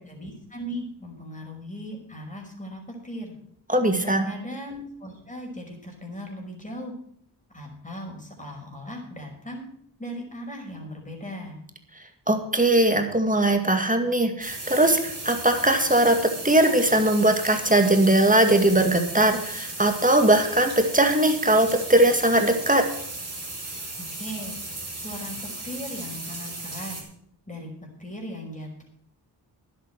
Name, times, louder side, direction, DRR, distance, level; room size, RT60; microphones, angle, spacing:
voice 1, 0.1-3.3 4.0-6.9 7.5-9.6 10.0-11.6 23.9-24.6 24.9-27.1 27.5-27.7 28.0-28.8, equal, 15° left, 0 dB, 5.5 m, -38 dB
voice 2, 3.7-4.3 12.3-16.2 16.4-22.8, right 1 dB, 20° right, 5 dB, 2.2 m, -20 dB
sound 1, 14.4-27.0, right 2 dB, 35° right, 4.1 m, -36 dB
10.5 x 8.1 x 7.7 m, 0.67 s
cardioid pair, 45°, 44 cm